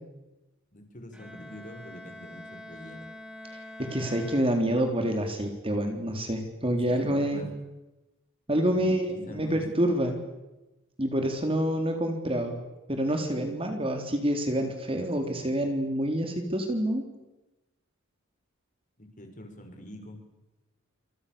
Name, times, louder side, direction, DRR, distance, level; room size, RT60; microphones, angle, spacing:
voice 1, 0.7-3.1 6.9-7.5 8.7-9.6 19.0-20.2, left 1 dB, 35° left, 4 dB, 6.2 m, -45 dB
Bowed string instrument, 1.1-5.1, left 1 dB, 5° right, 4.3 m, -46 dB
voice 2, 3.8-7.4 8.5-10.2 11.0-12.6 12.9-17.0, right 1 dB, 25° right, 4 dB, 3.8 m, -27 dB
29.0 x 28.0 x 7.0 m, 1.0 s
head